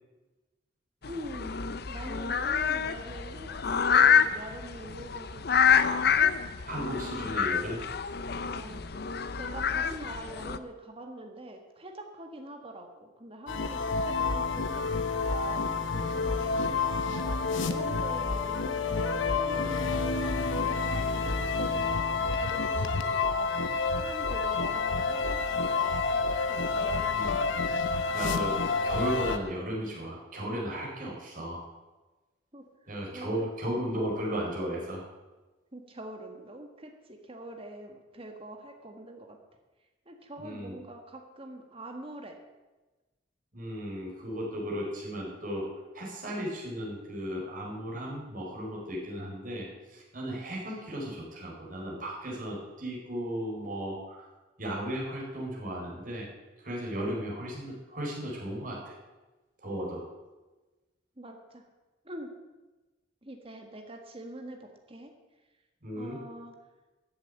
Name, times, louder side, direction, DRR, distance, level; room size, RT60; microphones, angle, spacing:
sound 1, 1.0-10.6, left 7 dB, 55° left, 0.6 m, -27 dB
voice 1, 1.1-1.5 1.9-6.0 7.0-7.1 8.5-8.9 9.4-16.6 17.0-23.5 23.9-27.2 32.5-33.5 35.7-39.4 40.0-42.3 61.2-61.6 62.0-62.3 63.2-65.1 66.0-66.5, right 1 dB, 30° right, 4 dB, 1.6 m, -44 dB
voice 2, 6.7-7.8 8.3-8.5 27.1-27.4 28.1-31.6 32.9-35.0 40.4-40.8 43.5-45.7 45.9-54.3 54.6-56.3 56.6-59.0 59.6-60.0 65.8-66.2, equal, 45° right, -3 dB, 4.4 m, -35 dB
sound 2, 13.5-29.4, left 4 dB, 75° left, 1.0 m, -29 dB
13.5 x 7.5 x 8.7 m, 1.2 s
head